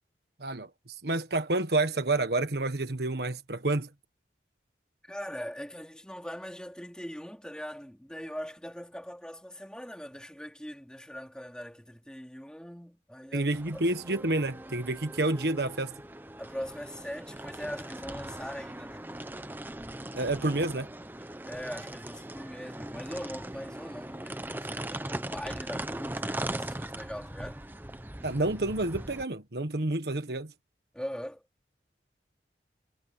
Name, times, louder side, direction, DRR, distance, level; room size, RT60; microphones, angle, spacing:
voice 1, 1.0-3.9 13.3-15.9 20.1-20.9 28.2-30.5, right 2 dB, 65° right, 1.5 m, -29 dB
voice 2, 5.0-13.8 16.4-19.1 21.5-27.6 30.9-31.4, equal, 5° left, 4.1 m, -41 dB
sound 1, 13.5-29.2, right 1 dB, 10° right, 0.8 m, -40 dB
head